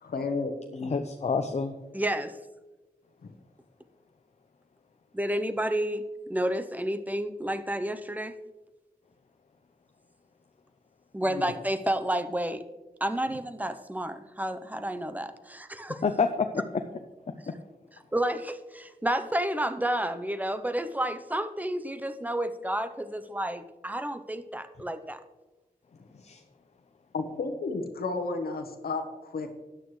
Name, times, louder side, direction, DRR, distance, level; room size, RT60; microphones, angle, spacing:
voice 1, 0.0-0.9 3.2-3.3 11.3-11.4 26.1-26.2 27.1-29.5, left 3 dB, 85° left, 5 dB, 1.1 m, -32 dB
voice 2, 0.8-1.8 16.0-16.8 17.3-17.6 26.2-26.4, left 5 dB, 45° left, 7 dB, 0.5 m, -28 dB
voice 3, 1.9-2.4 5.1-8.3 11.1-12.6 13.0-15.9 18.1-25.2, right 1 dB, 10° right, 10 dB, 0.7 m, -30 dB
13.0 x 9.3 x 3.1 m, 1.1 s
wide cardioid pair, 100°, 15 cm